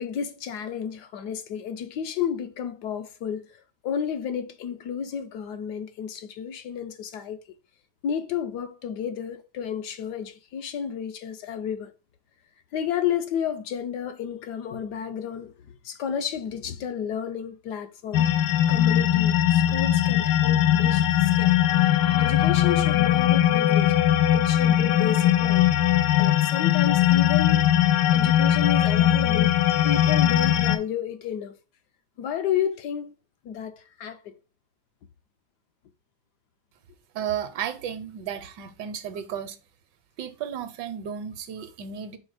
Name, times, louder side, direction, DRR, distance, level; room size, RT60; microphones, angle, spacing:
voice 1, 0.0-7.4 8.0-11.9 12.7-15.5 15.8-18.3 18.7-21.5 22.2-24.0 24.3-25.7 26.2-27.6 28.1-29.5 29.8-31.6 32.2-33.1 33.4-34.4, left 8 dB, 70° left, 1.1 m, -31 dB
sound 1, 18.1-30.8, left 12 dB, 90° left, 1.4 m, -20 dB
voice 2, 37.1-39.6 40.2-42.2, right 8 dB, 75° right, 1.3 m, -33 dB
5.3 x 4.1 x 4.8 m
omnidirectional pair, 2.0 m